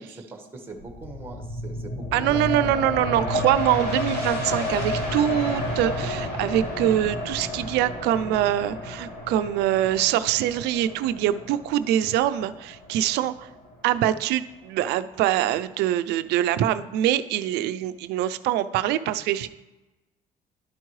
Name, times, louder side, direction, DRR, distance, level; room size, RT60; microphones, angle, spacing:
voice 1, 0.0-2.5 2.7-3.1, right 3 dB, 15° right, 3 dB, 1.4 m, -41 dB
sound 1, 0.8-14.0 14.5-14.6, left 1 dB, 65° left, 2.7 m, -31 dB
voice 2, 2.1-13.5 13.8-19.5, right 12 dB, 85° right, 13 dB, 0.4 m, -24 dB
11.5 x 4.5 x 3.1 m, 1.1 s
cardioid pair, 110°, 17 cm